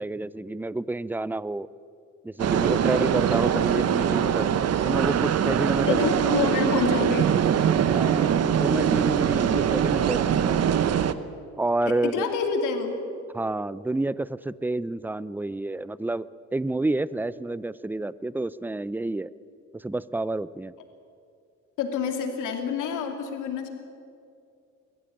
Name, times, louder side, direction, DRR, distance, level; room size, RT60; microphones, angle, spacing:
voice 1, 0.0-1.7 2.2-4.5 4.8-6.0 6.2-6.3 7.9-10.8 11.6-12.3 13.3-16.3 16.5-19.3 19.7-20.7, right 2 dB, 5° right, 18 dB, 0.5 m, -29 dB
sound 1, 2.4-11.1, right 9 dB, 55° right, 0.9 m, -23 dB
voice 2, 5.9-7.4 9.5-9.6 11.8-13.0 21.8-23.7, left 6 dB, 90° left, 5 dB, 2.6 m, -27 dB
22.0 x 14.5 x 8.7 m, 2.5 s
cardioid pair, 90°, 30 cm